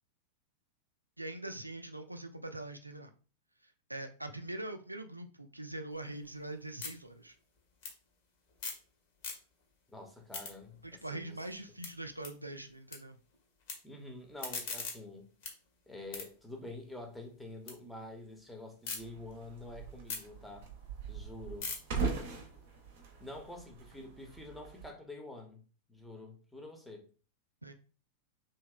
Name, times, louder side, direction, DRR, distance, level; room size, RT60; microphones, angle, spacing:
voice 1, 1.2-3.1 3.9-7.4 10.8-13.2 27.6-27.7, right 2 dB, 85° right, 0.3 m, -43 dB
sound 1, 5.9-8.9 9.1-9.8 10.1-13.0 13.3-13.7 14.2-17.8 18.1-19.0 19.4-23.6, left 4 dB, 50° left, 0.8 m, -45 dB
voice 2, 9.9-11.4 13.8-15.3 15.9-20.7 21.1-21.7 23.2-25.6 25.9-27.0, left 2 dB, 5° left, 0.7 m, -47 dB
sound 2, 19.0-24.9, right 5 dB, 55° right, 0.6 m, -41 dB
2.9 x 2.7 x 2.3 m
figure-of-eight pair, 90°, 0 cm